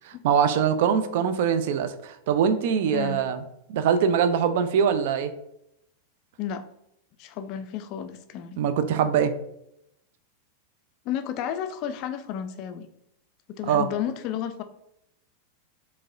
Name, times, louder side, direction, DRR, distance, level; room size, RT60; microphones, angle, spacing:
voice 1, 0.2-3.4 3.7-5.3 8.6-9.3 13.6-13.9, right 7 dB, 50° right, 10 dB, 0.3 m, -23 dB
voice 2, 2.9-3.2 6.4-6.6 7.2-8.6 11.1-12.9 13.5-14.6, left 9 dB, 40° left, 9 dB, 0.3 m, -32 dB
4.6 x 2.1 x 2.5 m, 0.79 s
figure-of-eight pair, 90°, 0 cm